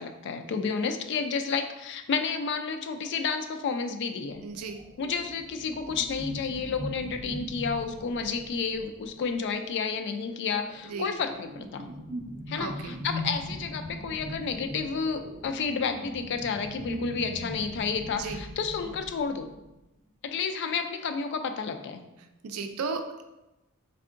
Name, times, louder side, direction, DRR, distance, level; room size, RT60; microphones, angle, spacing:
voice 1, 0.0-4.4 5.0-11.9 12.5-19.5 20.2-22.0, left 5 dB, 55° left, 7 dB, 0.3 m, -31 dB
sound 1, 4.3-9.5 10.4-19.7, equal, 25° right, 0.4 m, -40 dB
voice 2, 4.4-4.8 10.8-11.1 12.6-13.0 18.1-18.4 22.4-23.2, right 4 dB, 85° right, 6 dB, 0.4 m, -35 dB
3.6 x 3.4 x 2.5 m, 0.96 s
head